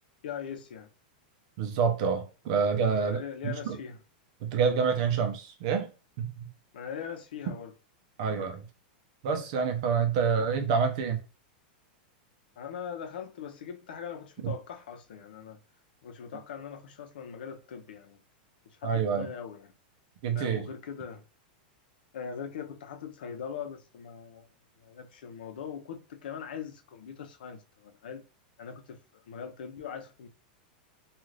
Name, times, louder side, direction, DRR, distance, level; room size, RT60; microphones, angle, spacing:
voice 1, 0.2-0.9 3.0-4.0 6.7-7.7 12.6-15.6 16.0-18.2 18.7-19.7 20.3-21.2 22.1-24.5 24.8-28.3 28.6-30.3, left 7 dB, 80° left, 0.7 m, -41 dB
voice 2, 1.6-3.8 4.4-5.9 6.2-6.5 8.2-8.7 9.2-11.2 14.4-14.5 18.8-19.3 20.2-20.7, right 6 dB, 45° right, 0.6 m, -27 dB
2.5 x 2.4 x 3.2 m
supercardioid pair, 175°, 5 cm